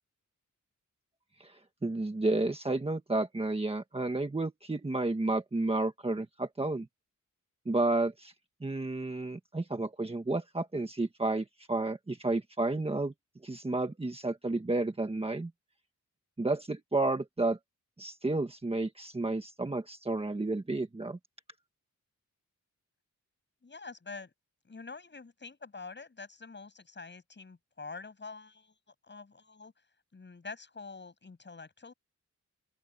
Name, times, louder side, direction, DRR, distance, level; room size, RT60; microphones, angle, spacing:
voice 1, 1.4-6.9 7.6-8.3 8.6-13.1 13.4-15.5 16.4-17.6 18.0-21.2, right 2 dB, 20° right, 1.5 m, -31 dB
voice 2, 23.6-24.3 24.6-29.7 30.1-31.9, left 4 dB, 35° left, 7.8 m, -46 dB
open air
wide cardioid pair, 175°, 31 cm